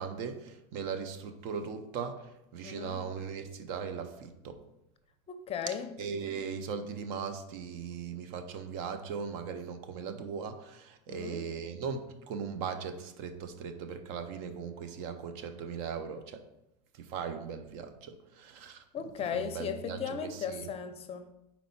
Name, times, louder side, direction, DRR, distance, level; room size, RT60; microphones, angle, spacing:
voice 1, 0.0-4.6 6.0-16.4 16.9-18.8 19.3-20.7, right 6 dB, 60° right, 9 dB, 0.7 m, -39 dB
voice 2, 2.6-3.0 5.3-5.9 11.1-11.4 18.9-21.3, left 7 dB, 30° left, 9 dB, 0.5 m, -36 dB
5.2 x 4.3 x 4.2 m, 0.87 s
supercardioid pair, 110°, 20 cm